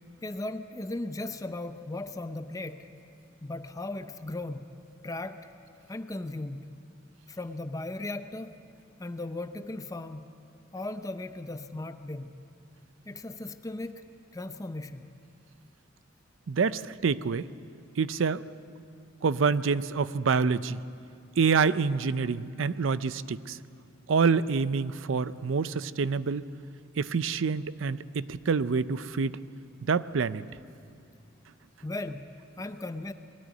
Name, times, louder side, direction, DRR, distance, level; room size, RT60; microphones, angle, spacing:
voice 1, 0.2-2.9 3.4-4.7 5.0-5.5 5.9-6.7 7.3-8.6 9.0-10.3 10.7-12.3 13.1-14.1 14.3-15.1 24.4-24.5 31.8-32.3 32.6-33.1, left 2 dB, 15° left, 9 dB, 0.6 m, -37 dB
voice 2, 16.5-17.5 18.0-18.4 19.2-20.8 21.4-23.6 24.1-26.4 27.0-29.4 29.9-30.4, right 5 dB, 70° right, 16 dB, 0.5 m, -27 dB
20.5 x 13.5 x 9.4 m, 2.4 s
head